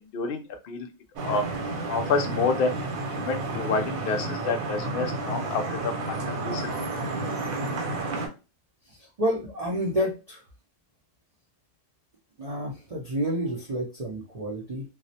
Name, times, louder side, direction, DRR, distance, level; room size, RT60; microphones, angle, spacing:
voice 1, 0.1-0.9 1.2-1.5 1.9-2.8 3.1-6.7, left 4 dB, 70° left, 5 dB, 0.5 m, -28 dB
Vehicle horn car horn honking / Traffic noise roadway noise, 1.2-8.3, right 2 dB, 85° right, 1.1 m, -31 dB
voice 2, 9.0-10.4 12.4-14.8, equal, 65° right, -3 dB, 0.3 m, -29 dB
2.4 x 2.0 x 2.7 m, 0.30 s
omnidirectional pair, 1.4 m